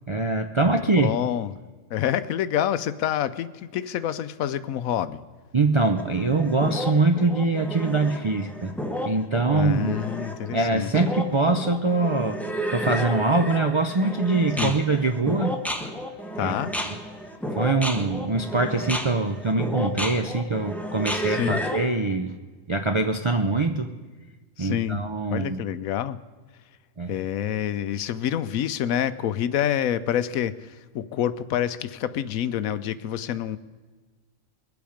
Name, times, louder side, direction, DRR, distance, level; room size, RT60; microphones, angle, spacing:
voice 1, 0.1-1.1 5.5-8.7 9.0-10.0 10.5-12.4 12.7-15.6 16.4-16.5 17.6-22.4 22.7-23.9 24.6-25.6 27.0-27.1, right 3 dB, 50° right, 5 dB, 0.3 m, -23 dB
voice 2, 0.6-1.5 1.9-5.2 9.5-10.9 14.6-14.8 16.4-16.7 21.2-21.6 24.6-25.0 25.3-26.2 27.1-33.6, left 10 dB, 85° left, 14 dB, 1.1 m, -27 dB
sound 1, 6.0-21.9, equal, ahead, 1.0 m, -32 dB
22.0 x 8.3 x 5.1 m, 1.4 s
omnidirectional pair, 1.4 m